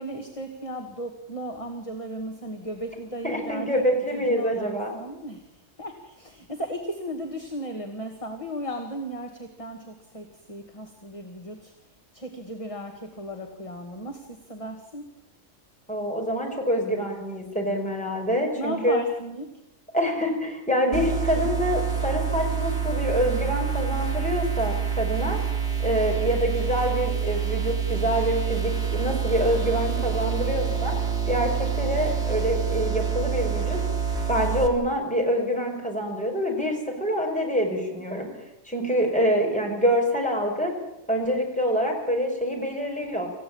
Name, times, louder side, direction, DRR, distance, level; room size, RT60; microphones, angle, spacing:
voice 1, 0.0-3.8 4.1-11.7 12.1-15.1 18.5-19.6, equal, 25° left, 3 dB, 2.1 m, -36 dB
voice 2, 3.2-4.9 15.9-19.0 19.9-25.4 25.8-30.9 31.3-33.8 34.3-38.3 38.7-40.7 41.1-43.3, equal, 5° left, 0 dB, 5.6 m, -26 dB
sound 1, 20.9-34.7, right 7 dB, 55° right, 3.6 m, -27 dB
27.0 x 15.5 x 8.9 m, 0.88 s
omnidirectional pair, 1.3 m